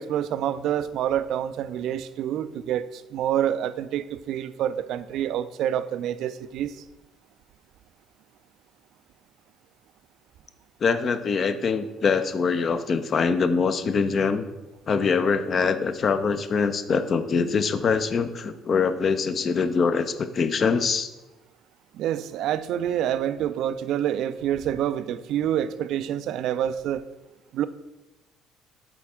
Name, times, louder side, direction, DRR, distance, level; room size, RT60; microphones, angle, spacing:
voice 1, 0.0-6.8 21.9-27.0 27.5-27.7, right 10 dB, 55° right, 13 dB, 0.3 m, -27 dB
voice 2, 10.8-14.4 14.9-21.1, left 5 dB, 40° left, 11 dB, 0.5 m, -24 dB
8.4 x 4.1 x 3.5 m, 1.0 s
figure-of-eight pair, 50°, 0 cm